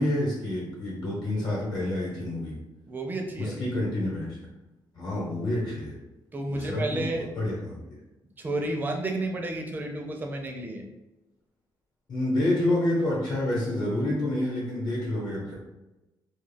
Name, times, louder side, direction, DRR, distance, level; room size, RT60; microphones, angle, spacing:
voice 1, 0.0-2.5 3.4-4.3 4.9-6.0 6.5-7.1 7.4-7.8 12.1-15.5, left 1 dB, 55° left, -4 dB, 0.9 m, -28 dB
voice 2, 2.9-3.5 6.3-7.3 8.4-10.8, right 2 dB, 25° right, 2 dB, 0.4 m, -31 dB
2.3 x 2.2 x 3.3 m, 1.0 s
cardioid pair, 145°, 8 cm